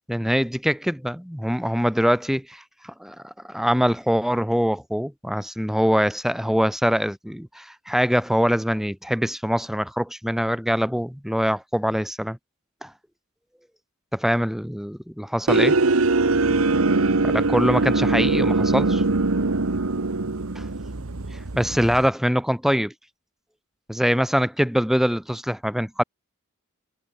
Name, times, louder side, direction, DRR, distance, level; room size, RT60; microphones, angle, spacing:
voice 1, 0.1-12.4 12.8-12.9 14.1-15.8 17.2-19.0 20.6-20.7 21.3-22.9 23.9-26.0, equal, ahead, 2.9 m, -23 dB
sound 1, 15.5-22.1, right 3 dB, 85° right, 1.2 m, -22 dB
head